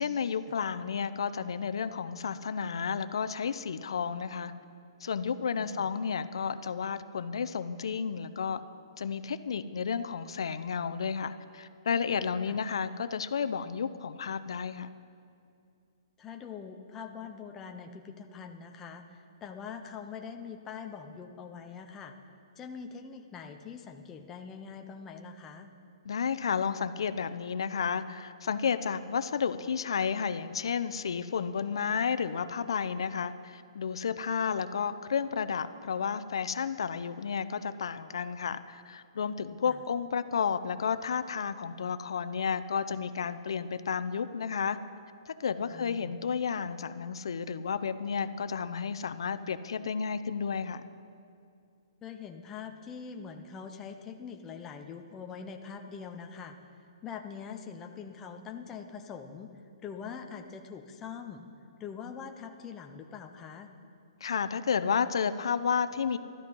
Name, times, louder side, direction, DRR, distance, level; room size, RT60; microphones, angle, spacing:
voice 1, 0.0-4.5 5.0-8.6 9.0-14.9 26.0-44.8 45.3-50.8 64.2-66.2, left 6 dB, 65° left, 12 dB, 0.6 m, -32 dB
voice 2, 5.6-5.9 12.5-12.6 16.2-22.1 22.6-25.7 39.7-39.8 45.7-46.2 52.0-56.6 57.0-59.5 59.8-61.4 61.8-63.7, left 6 dB, 10° left, 3 dB, 0.5 m, -43 dB
12.0 x 12.0 x 5.3 m, 2.4 s
hypercardioid pair, 170°, 3 cm